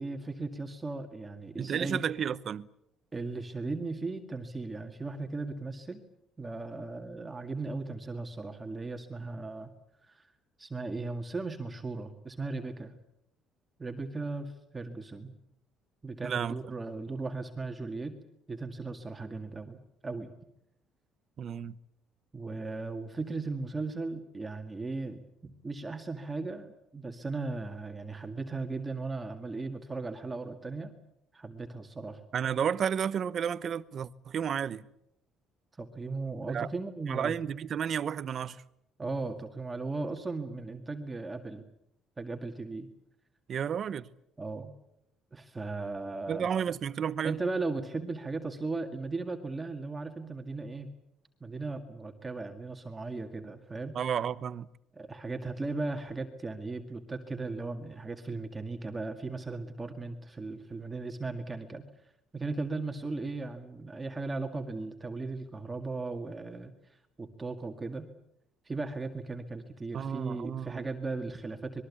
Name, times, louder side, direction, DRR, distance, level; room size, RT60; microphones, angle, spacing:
voice 1, 0.0-2.0 3.1-6.0 6.4-9.7 10.0-10.3 10.6-12.9 13.8-15.3 16.0-18.2 18.5-20.3 22.3-30.9 31.3-32.2 35.8-37.4 39.0-41.6 42.2-42.9 44.4-44.7 45.3-46.5 47.2-50.9 51.4-54.0 54.9-61.8 62.3-68.1 68.7-71.8, right 3 dB, 15° right, 2.0 m, -37 dB
voice 2, 1.6-2.7 16.2-16.6 21.4-21.8 32.3-34.9 36.4-36.7 37.1-38.6 43.5-44.1 46.3-47.4 53.9-54.7 69.9-70.8, right 8 dB, 40° right, 0.9 m, -32 dB
26.0 x 21.5 x 8.4 m
cardioid pair, 160°, 0 cm